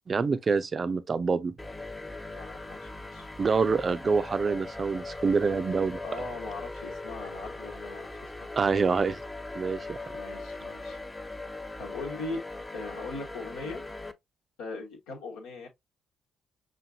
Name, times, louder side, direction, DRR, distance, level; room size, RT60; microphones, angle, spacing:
voice 1, 0.1-1.5 3.4-6.0 8.6-9.1 9.5-10.0, right 5 dB, 40° right, 0.5 m, -26 dB
sound 1, 1.6-14.1, left 2 dB, 20° left, 0.7 m, -40 dB
voice 2, 2.3-3.3 6.0-8.8 10.1-11.0 11.8-12.4 12.7-13.8 14.6-15.7, left 3 dB, 70° left, 1.1 m, -40 dB
6.1 x 2.5 x 2.5 m
figure-of-eight pair, 40°, 0 cm